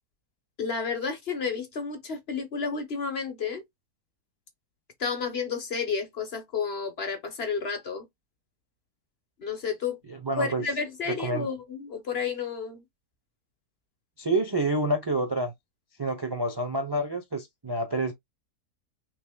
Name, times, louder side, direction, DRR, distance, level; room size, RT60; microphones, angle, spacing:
voice 1, 0.6-3.6 5.0-8.0 9.4-10.0 10.4-12.8, left 5 dB, 45° left, 1.1 m, -31 dB
voice 2, 10.1-10.6 11.1-11.5 14.2-15.5 16.0-18.1, right 2 dB, 30° right, 0.4 m, -28 dB
5.9 x 3.3 x 2.2 m
omnidirectional pair, 1.7 m